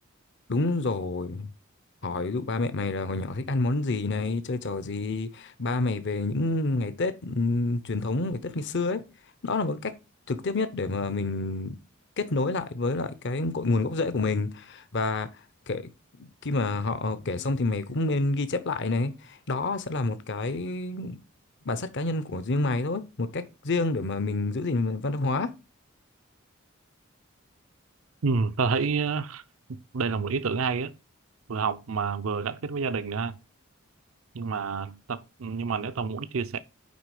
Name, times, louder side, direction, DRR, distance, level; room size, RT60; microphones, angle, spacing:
voice 1, 0.5-1.5 2.0-9.0 9.4-9.9 10.3-11.8 12.2-15.3 15.7-15.9 16.2-21.2 21.6-25.5, left 3 dB, 60° left, 0.8 m, -28 dB
voice 2, 28.2-29.4 29.7-30.9 31.5-33.4 34.3-36.6, right 5 dB, 75° right, 0.6 m, -29 dB
9.5 x 3.7 x 4.8 m
head